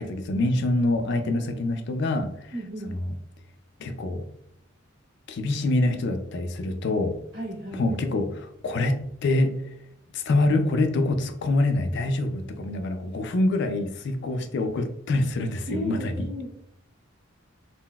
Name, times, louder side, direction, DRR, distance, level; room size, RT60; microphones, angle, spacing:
voice 1, 0.0-2.5 3.8-4.2 5.3-7.2 7.8-9.5 10.1-16.0, left 2 dB, 55° left, 0.3 m, -25 dB
voice 2, 2.5-3.0 7.3-7.8 15.7-16.5, equal, 60° right, 1.4 m, -34 dB
3.8 x 2.0 x 2.2 m
head